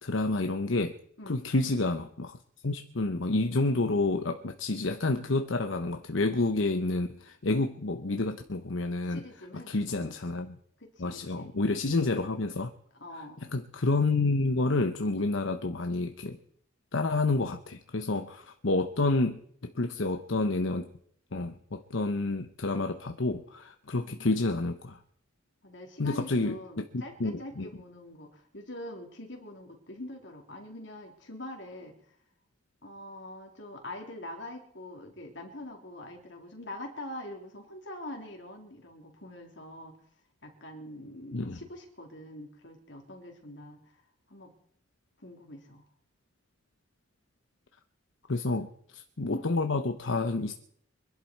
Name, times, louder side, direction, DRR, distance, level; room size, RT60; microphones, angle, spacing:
voice 1, 0.0-1.0 1.3-2.4 2.6-9.2 9.5-10.6 11.0-12.7 13.5-16.4 16.9-20.9 21.3-25.0 26.0-27.7 41.3-41.6 48.3-50.5, left 2 dB, 90° left, 7 dB, 1.0 m, -29 dB
voice 2, 9.0-10.2 10.8-11.5 13.0-13.4 24.0-24.5 25.6-32.0 32.8-40.0 40.4-43.8 44.3-44.5 45.2-45.8 49.3-49.5, left 1 dB, 65° left, 1 dB, 3.7 m, -44 dB
24.5 x 11.5 x 4.6 m, 0.67 s
head